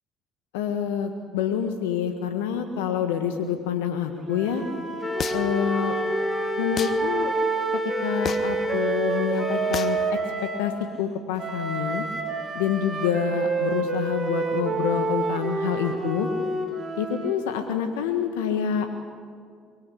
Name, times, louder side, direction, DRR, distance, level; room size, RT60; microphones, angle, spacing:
voice 1, 0.5-4.6 5.3-5.9 6.6-7.3 7.7-10.0 10.4-10.7 11.0-12.0 12.5-16.3 17.0-18.9, left 8 dB, 85° left, 6 dB, 1.5 m, -27 dB
Wind instrument woodwind instrument, 4.3-10.7 11.4-17.4, right 4 dB, 40° right, 4.7 m, -29 dB
Wind instrument woodwind instrument 2, 5.0-10.2, left 2 dB, 25° left, 2.3 m, -30 dB
sound 1, 5.2-5.6 6.8-7.0 8.2-8.6 9.7-10.0, left 7 dB, 50° left, 1.5 m, -31 dB
23.5 x 23.5 x 8.5 m, 2.2 s
hypercardioid pair, 60°, 0 cm